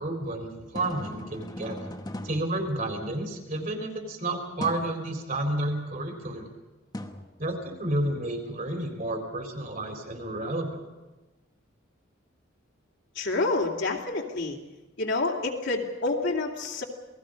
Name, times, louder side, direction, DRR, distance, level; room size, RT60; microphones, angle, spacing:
voice 1, 0.0-1.8 2.2-6.5 7.4-10.8, right 1 dB, 45° right, 3 dB, 3.9 m, -31 dB
sound 1, 0.5-3.4 4.6-5.0 6.9-8.0, left 1 dB, 20° left, 1.2 m, -40 dB
voice 2, 13.1-14.6 15.0-16.8, left 3 dB, 60° left, 0 dB, 2.7 m, -28 dB
28.5 x 19.0 x 5.3 m, 1.1 s
head